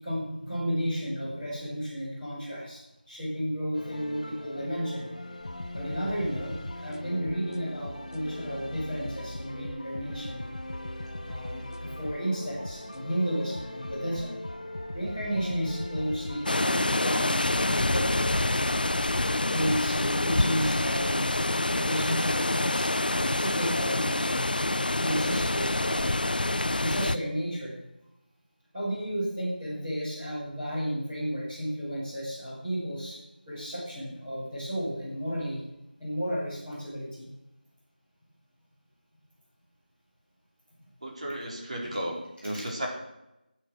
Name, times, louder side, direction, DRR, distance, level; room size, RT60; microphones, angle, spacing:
voice 1, 0.0-2.8 3.1-5.1 5.7-10.5 11.2-14.3 14.9-18.7 19.5-21.4 21.6-24.5 24.9-26.0 26.8-27.8 28.7-33.2 33.5-35.6 36.0-37.3 42.5-42.6, equal, 10° right, -13 dB, 6.1 m, -33 dB
sound 1, 3.7-18.8, left 1 dB, 45° left, 2.1 m, -40 dB
sound 2, 5.4-8.2 8.7-13.0 13.5-17.8 18.3-22.6 23.1-24.2, left 1 dB, 20° left, 0.5 m, -42 dB
sound 3, 16.5-27.2, left 2 dB, 65° left, 0.6 m, -27 dB
voice 2, 41.0-42.9, right 1 dB, 40° right, -2 dB, 4.6 m, -34 dB
18.5 x 9.1 x 6.6 m, 0.91 s
figure-of-eight pair, 175°, 5 cm